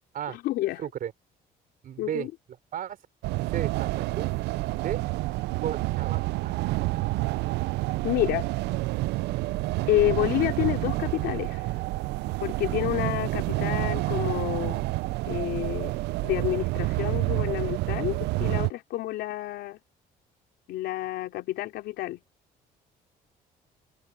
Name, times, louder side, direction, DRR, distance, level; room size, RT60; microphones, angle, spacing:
voice 1, 0.3-0.8 2.0-2.3 8.0-8.5 9.9-11.8 12.4-14.8 15.3-15.9 16.2-19.8 20.7-22.2, left 15 dB, 80° left, 4.3 m, -29 dB
voice 2, 0.8-1.1 1.8-2.3 2.7-3.0 3.5-4.3 4.7-5.0 5.6-6.6, right 10 dB, 55° right, 4.5 m, -34 dB
sound 1, 3.2-18.7, right 20 dB, 80° right, 0.5 m, -28 dB
cardioid pair, 110°, 17 cm